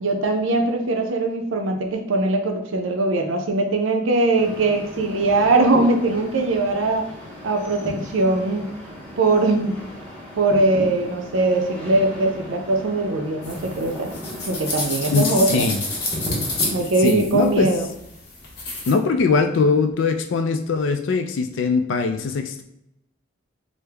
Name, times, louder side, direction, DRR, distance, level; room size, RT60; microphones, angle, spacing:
voice 1, 0.0-7.1 7.4-8.7 9.2-9.7 10.4-14.1 14.5-15.6 16.7-17.9, right 2 dB, 80° right, 4 dB, 0.5 m, -21 dB
sound 1, 4.3-16.8, left 1 dB, 5° left, 0.7 m, -36 dB
sound 2, 13.4-18.9, left 2 dB, 55° left, 0.8 m, -30 dB
voice 2, 15.1-15.8 17.0-17.7 18.9-22.6, left 4 dB, 70° left, 7 dB, 0.3 m, -21 dB
3.3 x 2.1 x 3.4 m, 0.80 s
head